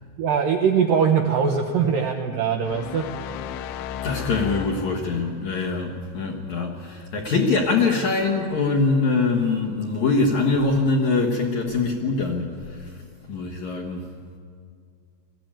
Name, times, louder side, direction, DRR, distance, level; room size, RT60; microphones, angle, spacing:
voice 1, 0.2-3.1, right 6 dB, 75° right, 3 dB, 2.1 m, -21 dB
sound 1, 2.6-5.4, left 7 dB, 85° left, 2.9 m, -34 dB
voice 2, 4.0-13.0 13.3-14.0, left 3 dB, 60° left, -1 dB, 2.0 m, -23 dB
19.5 x 15.0 x 8.9 m, 2.3 s
omnidirectional pair, 5.1 m